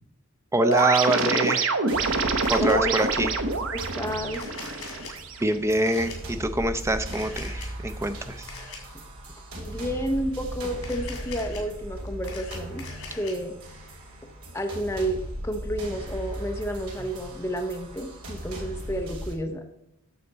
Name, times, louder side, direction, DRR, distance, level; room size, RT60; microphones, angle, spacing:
voice 1, 0.5-1.7 2.5-3.3 5.4-8.5, right 2 dB, 10° right, 9 dB, 0.4 m, -25 dB
sound 1, 0.6-5.6, right 3 dB, 65° right, 0.9 m, -26 dB
Camera, 0.7-1.2 2.4-2.7 4.3-5.1 5.9-6.2 7.1-7.7 8.5-8.8 10.8-11.6 12.1-13.3, left 5 dB, 80° left, 2.6 m, -41 dB
sound 2, 1.9-19.3, equal, 80° right, 2.8 m, -38 dB
voice 2, 2.6-2.9 3.7-4.4 8.9-9.0 9.6-12.8 13.1-13.5 14.5-19.6, equal, 10° left, 3 dB, 0.7 m, -30 dB
8.8 x 6.6 x 4.1 m, 0.78 s
head